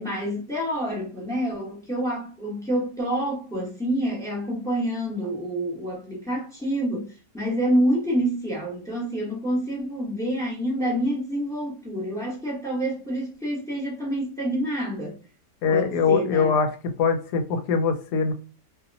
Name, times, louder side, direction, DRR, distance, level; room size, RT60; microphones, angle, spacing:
voice 1, 0.0-15.2 15.7-16.5, right 1 dB, 5° left, 0.5 m, -27 dB
voice 2, 15.6-16.7 17.0-18.3, left 5 dB, 80° left, 1.2 m, -22 dB
2.7 x 2.1 x 2.5 m
omnidirectional pair, 1.8 m